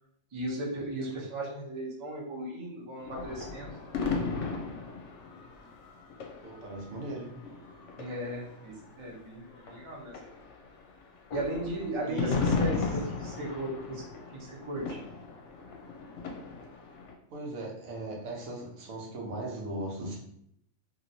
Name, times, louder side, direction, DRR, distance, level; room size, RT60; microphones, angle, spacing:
voice 1, 0.3-3.7 8.0-10.2 11.3-14.0 14.3-15.0, right 1 dB, 30° right, -3 dB, 0.6 m, -36 dB
sound 1, 3.0-9.3 9.6-17.1, left 4 dB, 70° left, 0.9 m, -36 dB
voice 2, 6.4-7.3 12.1-12.4 17.3-20.2, right 1 dB, 80° right, -1 dB, 1.2 m, -38 dB
3.0 x 2.7 x 2.7 m, 0.71 s
omnidirectional pair, 1.4 m